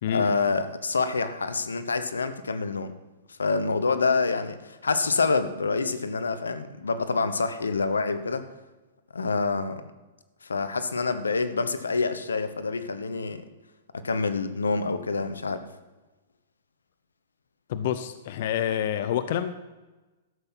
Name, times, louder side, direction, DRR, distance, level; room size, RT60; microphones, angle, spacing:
voice 1, 0.1-2.9 3.4-8.4 9.1-9.8 10.4-13.4 13.9-15.6, left 4 dB, 85° left, 11 dB, 0.9 m, -27 dB
voice 2, 17.7-19.5, left 10 dB, 60° left, 11 dB, 0.7 m, -27 dB
12.5 x 7.8 x 5.9 m, 1.1 s
hypercardioid pair, 115°, 0 cm